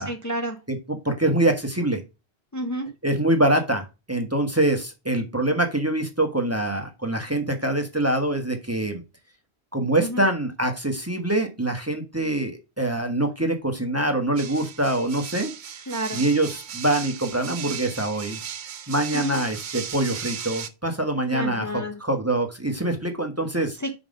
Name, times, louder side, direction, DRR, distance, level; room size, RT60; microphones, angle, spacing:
voice 1, 0.1-0.6 2.5-2.9 10.0-10.2 15.9-16.2 19.1-19.4 21.3-22.0 23.8-23.9, equal, 20° left, 3 dB, 0.8 m, -30 dB
voice 2, 0.7-2.0 3.0-9.0 9.7-15.5 16.1-18.4 18.9-23.8, right 1 dB, 15° right, 4 dB, 1.1 m, -24 dB
sound 1, 14.4-20.7, right 8 dB, 55° right, 0.7 m, -36 dB
5.6 x 5.0 x 5.2 m, 0.27 s
omnidirectional pair, 1.1 m